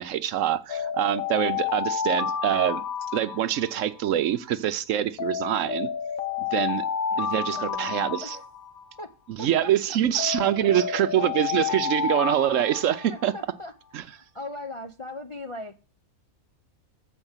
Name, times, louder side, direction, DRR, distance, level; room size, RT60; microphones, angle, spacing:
voice 1, 0.0-2.8 3.1-5.9 6.5-6.9 7.2-8.4 9.3-13.3 13.9-14.0, right 11 dB, 70° right, 0.9 m, -25 dB
Alarm, 0.7-4.0 5.2-9.0 10.2-13.4, left 7 dB, 75° left, 1.5 m, -30 dB
voice 2, 7.1-8.4 9.0-9.1 9.4-9.7 10.1-10.7 13.1-13.7 14.0-15.8, left 2 dB, 40° left, 0.4 m, -40 dB
7.8 x 5.3 x 7.2 m
omnidirectional pair, 1.5 m